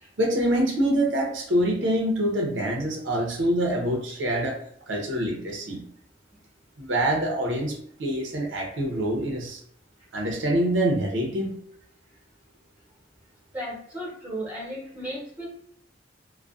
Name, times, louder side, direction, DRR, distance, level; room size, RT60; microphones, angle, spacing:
voice 1, 0.2-5.8 6.8-9.6 10.1-11.6, right 1 dB, 90° right, 0 dB, 0.7 m, -25 dB
voice 2, 13.5-15.5, equal, 10° right, -6 dB, 0.9 m, -35 dB
2.4 x 2.1 x 2.4 m, 0.67 s
head